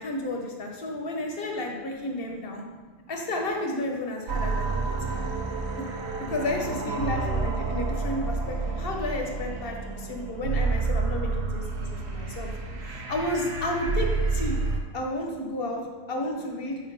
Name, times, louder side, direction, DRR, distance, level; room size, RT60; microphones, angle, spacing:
voice 1, 0.0-2.6 3.1-5.3 6.3-12.5 12.8-14.6 14.9-15.8 16.1-16.8, left 1 dB, 50° left, 1 dB, 1.0 m, -32 dB
voice 2, 2.6-3.1 6.7-7.5 9.9-10.4 11.4-13.1, right 3 dB, 85° right, -2 dB, 1.1 m, -45 dB
sound 1, 4.3-14.8, right 4 dB, 60° right, 1.0 m, -29 dB
4.4 x 4.3 x 5.3 m, 1.4 s
omnidirectional pair, 1.3 m